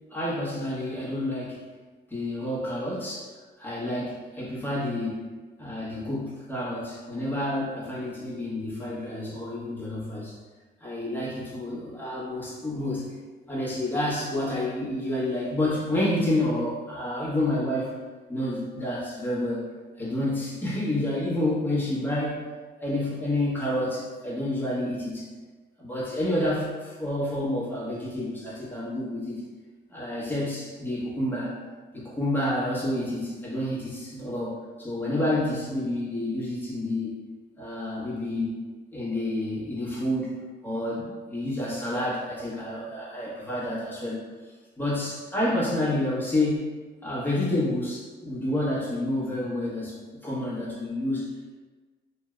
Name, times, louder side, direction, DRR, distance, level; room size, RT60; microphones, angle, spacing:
voice 1, 0.1-1.6 2.1-3.3 3.6-5.2 5.6-10.3 10.8-13.0 13.5-17.9 18.3-19.7 20.0-22.4 22.8-25.2 25.8-29.4 29.9-31.6 31.9-37.1 37.6-38.5 38.9-40.4 40.6-44.2 44.8-46.6 47.0-49.9 50.2-51.2, left 1 dB, 10° left, -8 dB, 1.2 m, -29 dB
3.2 x 2.6 x 2.4 m, 1.3 s
cardioid pair, 90°, 20 cm